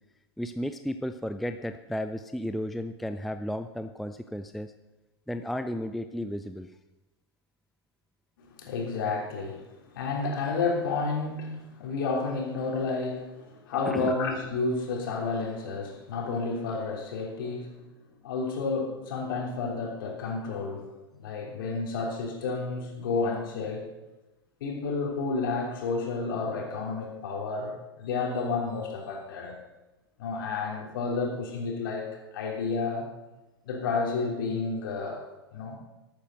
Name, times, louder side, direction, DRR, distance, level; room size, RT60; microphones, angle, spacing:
voice 1, 0.4-4.7 5.3-6.7 13.9-14.1, equal, ahead, 9 dB, 0.4 m, -33 dB
voice 2, 8.4-9.7 9.9-17.8 18.2-20.9 21.2-23.9 24.6-29.6 30.2-33.1 33.6-35.2 35.5-35.8, left 4 dB, 55° left, 0 dB, 3.3 m, -31 dB
13.5 x 8.9 x 6.5 m, 1.0 s
figure-of-eight pair, 95°, 13 cm